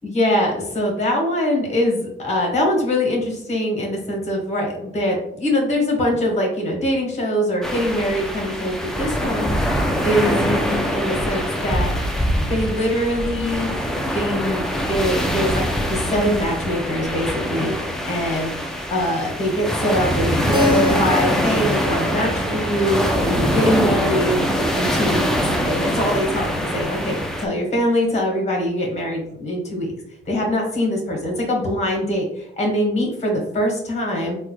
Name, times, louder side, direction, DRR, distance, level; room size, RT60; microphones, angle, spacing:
voice 1, 0.0-9.8 10.0-11.9 12.5-13.7 14.1-17.7 18.0-18.5 18.9-24.5 24.7-29.9 30.3-34.4, left 1 dB, 35° left, 0 dB, 1.3 m, -23 dB
sound 1, 7.6-27.5, equal, 5° left, 0.5 m, -23 dB
Keyboard (musical), 20.5-25.1, left 1 dB, 25° right, 0.8 m, -28 dB
3.5 x 2.3 x 3.0 m, 0.72 s
cardioid pair, 90°, 20 cm